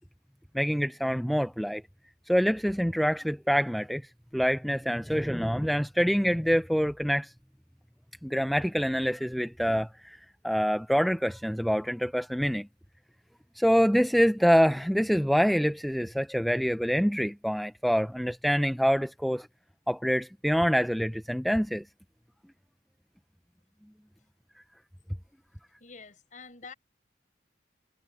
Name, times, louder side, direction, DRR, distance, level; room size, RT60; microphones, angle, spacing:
voice 1, 0.5-1.8 2.3-4.0 4.3-7.3 8.2-10.2 10.4-12.7 13.6-19.5 19.9-21.8, equal, ahead, 0.5 m, -26 dB
voice 2, 25.8-26.7, left 4 dB, 45° left, 6.5 m, -47 dB
head